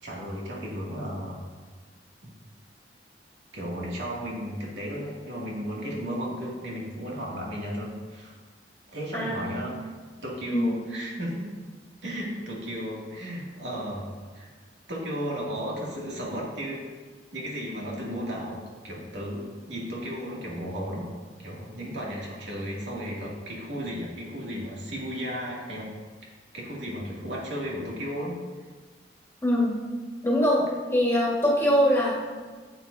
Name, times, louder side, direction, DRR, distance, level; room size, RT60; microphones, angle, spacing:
voice 1, 0.0-1.4 2.2-2.3 3.5-8.4 8.9-9.9 10.2-11.5 12.0-14.5 14.9-16.8 17.3-21.1 21.4-25.9 26.5-28.4, equal, 80° right, -4 dB, 2.4 m, -34 dB
voice 2, 9.1-9.6 10.5-10.7 29.4-29.8 30.2-30.6 30.9-32.1, equal, 15° left, -5 dB, 1.7 m, -22 dB
12.5 x 8.0 x 2.7 m, 1.4 s
head